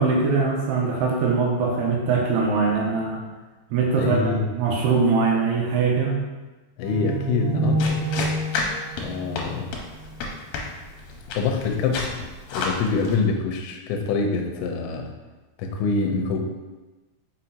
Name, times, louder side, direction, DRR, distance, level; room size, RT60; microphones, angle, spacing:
voice 1, 0.0-3.2 3.7-6.2, right 4 dB, 80° right, -2 dB, 2.8 m, -22 dB
voice 2, 3.9-4.5 6.8-8.0 9.0-9.7 11.3-12.2 12.5-15.1 15.6-16.4, left 4 dB, 90° left, 2 dB, 3.0 m, -25 dB
sound 1, 6.8-10.2, right 2 dB, 40° right, 1.7 m, -28 dB
sound 2, 7.8-13.2, left 3 dB, 75° left, 2.4 m, -31 dB
6.3 x 5.6 x 2.8 m, 1.2 s
omnidirectional pair, 5.0 m